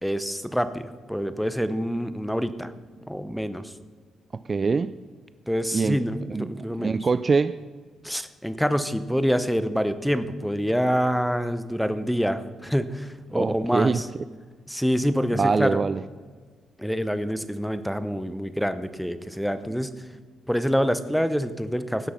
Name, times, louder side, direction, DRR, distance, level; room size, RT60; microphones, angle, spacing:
voice 1, 0.0-2.7 3.1-3.7 5.5-7.0 8.0-14.1 14.7-15.8 16.8-19.9 20.5-22.1, equal, ahead, 12 dB, 0.8 m, -26 dB
voice 2, 4.5-4.9 5.7-6.0 6.3-6.5 6.8-7.6 13.3-14.0 15.3-16.0, right 4 dB, 35° right, 14 dB, 0.3 m, -23 dB
16.5 x 6.1 x 5.7 m, 1.5 s
cardioid pair, 90°, 0 cm